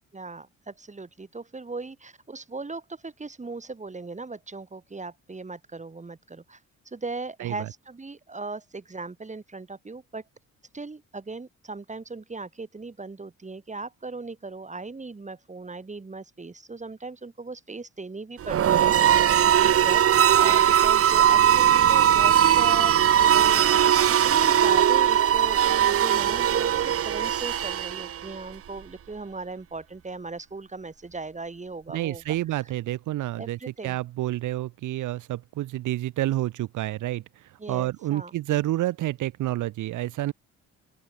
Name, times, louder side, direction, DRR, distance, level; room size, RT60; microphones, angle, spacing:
voice 1, 0.1-10.2 10.7-32.4 33.4-34.0 37.6-38.3, right 3 dB, 25° right, 4.5 m, -38 dB
sound 1, 18.4-28.4, right 10 dB, 50° right, 0.9 m, -20 dB
voice 2, 31.9-40.3, right 15 dB, 85° right, 1.5 m, -29 dB
open air
cardioid pair, 90°, 30 cm